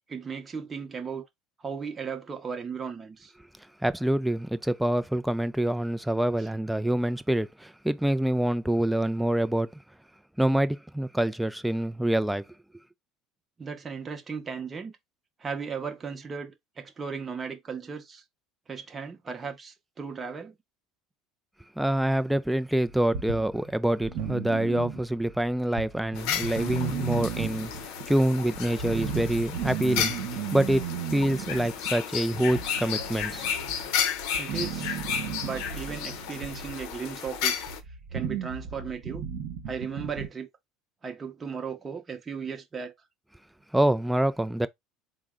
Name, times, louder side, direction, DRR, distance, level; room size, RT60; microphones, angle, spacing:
voice 1, 0.1-1.3 1.6-3.3 13.6-15.0 15.4-18.2 18.7-20.5 34.4-35.0 35.4-37.6 38.1-39.3 39.7-40.5 41.0-42.9, right 6 dB, 25° right, 0.7 m, -36 dB
voice 2, 3.8-9.8 10.4-12.4 21.8-30.1 30.5-30.8 31.1-33.5 43.7-44.7, right 1 dB, 5° right, 0.3 m, -26 dB
sound 1, 22.9-25.4 25.8-40.3, right 7 dB, 65° right, 0.9 m, -35 dB
sound 2, 26.2-37.8, left 8 dB, 75° left, 0.6 m, -33 dB
3.8 x 2.1 x 3.6 m
supercardioid pair, 110°, 0 cm